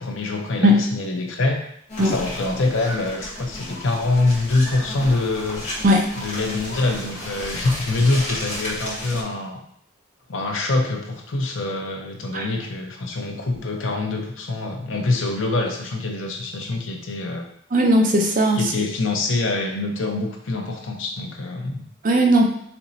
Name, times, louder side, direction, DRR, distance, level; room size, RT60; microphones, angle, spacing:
voice 1, 0.0-1.6 2.0-5.7 6.2-9.6 10.3-17.5 18.5-21.9, left 2 dB, 85° left, 3 dB, 0.7 m, -25 dB
sound 1, 1.9-9.2, left 1 dB, 35° left, 1.1 m, -33 dB
voice 2, 17.7-18.6 22.0-22.4, equal, 45° right, 2 dB, 0.5 m, -17 dB
4.3 x 2.9 x 2.7 m, 0.69 s
head